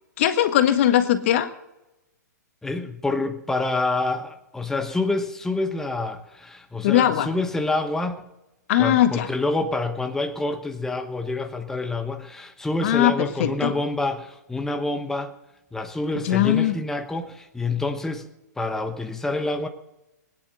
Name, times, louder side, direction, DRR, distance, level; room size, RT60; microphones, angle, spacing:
voice 1, 0.2-1.5 6.8-7.3 8.7-9.3 12.8-13.7 16.2-16.7, left 11 dB, 45° left, 10 dB, 1.5 m, -20 dB
voice 2, 2.6-8.3 8.8-15.3 15.7-18.3 18.6-19.7, left 2 dB, 5° left, 7 dB, 1.1 m, -27 dB
21.0 x 10.5 x 6.4 m, 0.96 s
figure-of-eight pair, 115°, 10 cm